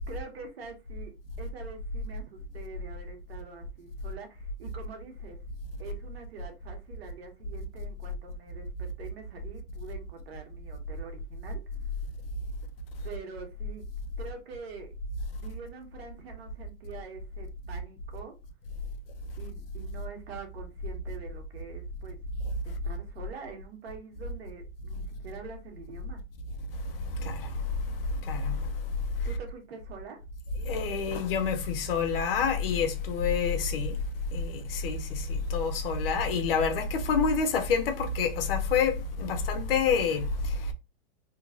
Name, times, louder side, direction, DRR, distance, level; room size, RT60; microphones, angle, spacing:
voice 1, 0.0-5.4 5.8-11.6 13.0-13.9 14.2-14.9 15.4-18.3 19.4-22.2 22.6-26.2 29.2-30.2, right 5 dB, 75° right, 1.5 m, -45 dB
voice 2, 28.3-28.6 30.6-34.0 34.3-40.5, left 5 dB, 65° left, 0.9 m, -27 dB
3.3 x 3.1 x 2.6 m
supercardioid pair, 160°, 31 cm